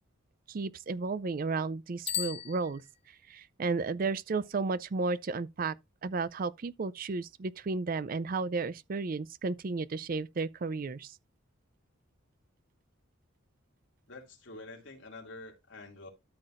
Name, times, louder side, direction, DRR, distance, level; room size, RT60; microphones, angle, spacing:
voice 1, 0.5-2.8 3.3-5.7 6.0-11.1, right 4 dB, 45° right, 0.4 m, -33 dB
Bicycle bell, 2.0-3.4, left 9 dB, 30° left, 0.5 m, -37 dB
voice 2, 14.1-16.1, left 2 dB, 60° left, 2.5 m, -47 dB
13.0 x 5.9 x 2.5 m
head